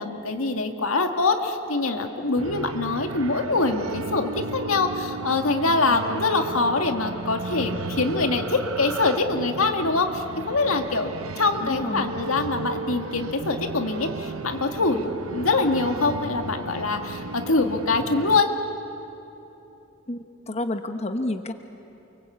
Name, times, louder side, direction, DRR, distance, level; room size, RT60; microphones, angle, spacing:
voice 1, 0.0-18.5, left 3 dB, 85° left, 5 dB, 1.9 m, -24 dB
sound 1, 2.4-18.4, right 3 dB, 90° right, 1.0 m, -34 dB
voice 2, 11.6-12.1 20.1-21.5, left 1 dB, 30° left, 7 dB, 1.0 m, -30 dB
29.5 x 23.5 x 8.5 m, 3.0 s
head